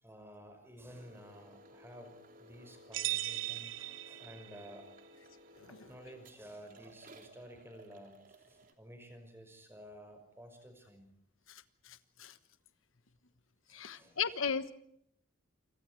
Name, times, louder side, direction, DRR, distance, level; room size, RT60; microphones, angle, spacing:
voice 1, 0.0-4.9 5.7-11.1 13.7-14.2, equal, 10° right, 6 dB, 5.7 m, -53 dB
sound 1, 0.9-8.7, equal, 40° right, 3.0 m, -58 dB
sound 2, 2.9-4.7, right 15 dB, 70° right, 0.9 m, -38 dB
voice 2, 11.5-12.3 13.7-14.7, left 6 dB, 80° left, 12 dB, 1.3 m, -37 dB
28.5 x 26.0 x 4.7 m, 0.72 s
head